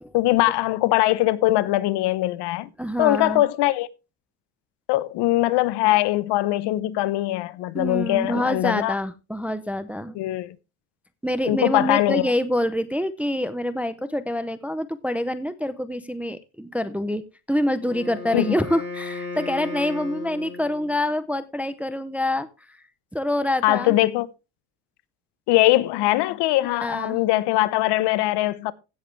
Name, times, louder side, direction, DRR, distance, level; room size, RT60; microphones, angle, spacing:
voice 1, 0.1-2.7 3.0-3.9 4.9-9.0 10.2-10.6 11.4-12.3 18.3-18.5 23.6-24.3 25.5-28.7, left 16 dB, 65° left, 0.9 m, -21 dB
voice 2, 2.8-3.4 7.7-10.2 11.2-17.2 17.5-22.8 23.1-23.9 26.6-27.2, left 1 dB, 5° right, 0.5 m, -26 dB
Wind instrument woodwind instrument, 17.8-21.1, left 3 dB, 25° left, 6.4 m, -35 dB
16.0 x 7.1 x 3.2 m
cardioid pair, 140°, 44 cm